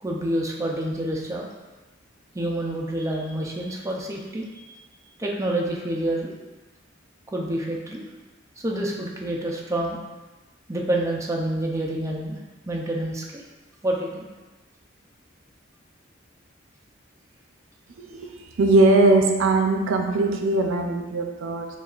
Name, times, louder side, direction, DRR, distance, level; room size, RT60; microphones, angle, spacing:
voice 1, 0.0-1.5 2.3-4.6 5.2-6.3 7.3-8.0 8.6-10.0 10.7-12.4 12.7-13.4 13.8-14.2, right 1 dB, 15° right, -2 dB, 0.4 m, -28 dB
voice 2, 18.6-21.7, right 2 dB, 80° right, 3 dB, 0.5 m, -20 dB
7.2 x 2.4 x 2.4 m, 1.2 s
head